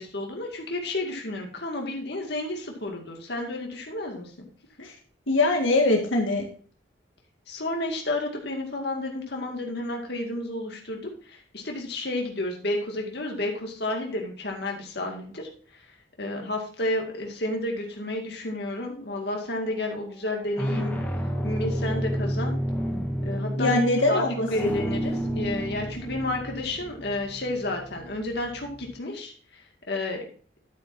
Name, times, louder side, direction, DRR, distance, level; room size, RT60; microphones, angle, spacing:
voice 1, 0.0-4.5 7.5-15.8 16.2-20.9 21.4-22.5 23.2-23.8 24.1-24.2 24.5-29.6 29.9-30.2, left 1 dB, 60° left, 1 dB, 2.2 m, -31 dB
voice 2, 5.3-6.4 23.6-24.3, left 2 dB, 90° left, 2 dB, 1.8 m, -22 dB
sound 1, 19.1-19.5 20.3-28.9, equal, 10° left, 1.5 m, -31 dB
10.5 x 8.8 x 2.7 m, 0.43 s
head